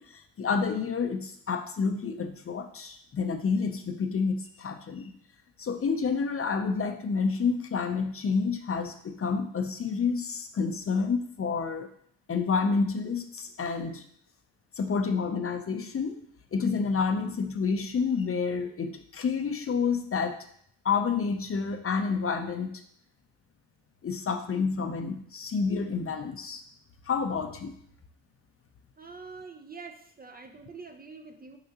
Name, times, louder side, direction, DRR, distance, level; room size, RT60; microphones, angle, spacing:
voice 1, 0.0-5.1 5.6-11.9 12.3-14.0 14.8-16.2 16.5-20.3 20.8-22.8 24.0-26.6 27.1-27.7, left 5 dB, 35° left, 6 dB, 0.6 m, -29 dB
voice 2, 29.0-31.6, right 4 dB, 20° right, 4 dB, 0.5 m, -45 dB
6.6 x 5.1 x 2.9 m, 0.64 s
cardioid pair, 85°, 42 cm